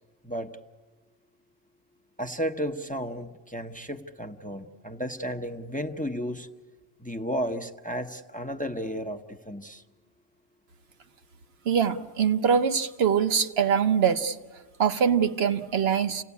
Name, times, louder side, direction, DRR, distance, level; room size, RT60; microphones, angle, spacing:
voice 1, 0.2-0.6 2.2-6.5 7.0-9.8, equal, 10° left, 6 dB, 0.7 m, -33 dB
voice 2, 11.7-14.4 14.8-16.2, right 7 dB, 60° right, 8 dB, 1.2 m, -23 dB
29.0 x 17.5 x 8.4 m, 1.3 s
omnidirectional pair, 1.2 m